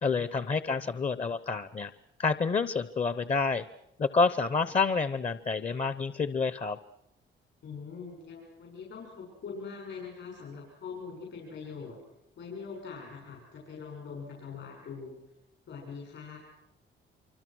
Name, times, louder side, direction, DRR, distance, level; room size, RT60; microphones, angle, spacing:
voice 1, 0.0-1.9 2.2-3.6 4.0-6.8, left 4 dB, 35° left, 15 dB, 0.8 m, -28 dB
voice 2, 7.6-12.0 12.4-15.2 15.7-16.4, left 5 dB, 70° left, -1 dB, 7.1 m, -43 dB
25.5 x 25.5 x 6.3 m, 0.85 s
cardioid pair, 90°, 20 cm